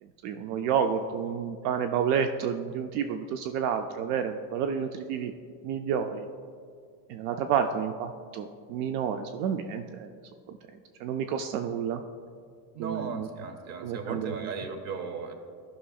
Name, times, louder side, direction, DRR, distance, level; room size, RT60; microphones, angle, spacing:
voice 1, 0.0-5.3 5.6-6.3 7.1-10.1 10.5-10.6 11.0-12.0 12.8-13.3 13.8-14.5, right 7 dB, 65° right, 7 dB, 0.5 m, -30 dB
voice 2, 12.7-15.3, right 5 dB, 35° right, 7 dB, 0.8 m, -36 dB
13.0 x 6.1 x 2.3 m, 2.1 s
supercardioid pair, 145°, 49 cm